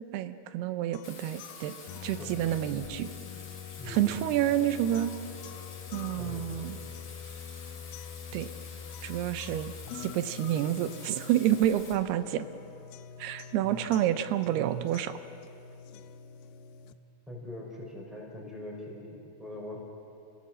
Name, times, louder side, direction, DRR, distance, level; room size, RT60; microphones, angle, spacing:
voice 1, 0.0-1.7 2.0-3.1 3.9-5.1 5.9-6.8 8.3-8.5 9.0-12.5 13.2-15.1, right 12 dB, 90° right, 11 dB, 2.9 m, -29 dB
sound 1, 0.9-16.9, left 8 dB, 80° left, 2.5 m, -45 dB
Bathtub (filling or washing), 1.0-11.9, left 4 dB, 45° left, 3.1 m, -48 dB
voice 2, 3.8-4.2 6.2-6.6 13.6-13.8 17.3-19.8, left 1 dB, ahead, -2 dB, 4.6 m, -42 dB
29.5 x 16.5 x 7.5 m, 2.7 s
omnidirectional pair, 4.5 m